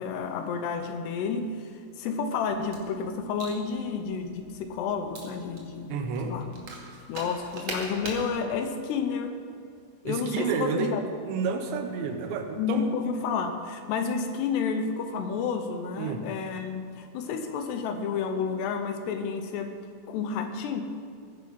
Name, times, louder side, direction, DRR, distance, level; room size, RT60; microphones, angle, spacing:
voice 1, 0.0-6.0 6.3-6.5 7.1-9.4 10.1-11.0 12.6-19.8 20.1-20.8, left 5 dB, 75° left, 7 dB, 2.8 m, -30 dB
sound 1, 2.4-8.3, right 2 dB, 45° right, 2.6 m, -42 dB
voice 2, 5.9-6.4 10.0-10.9 11.3-12.9 16.0-16.3, right 6 dB, 80° right, 6 dB, 3.4 m, -30 dB
20.5 x 10.5 x 5.4 m, 2.2 s
omnidirectional pair, 5.2 m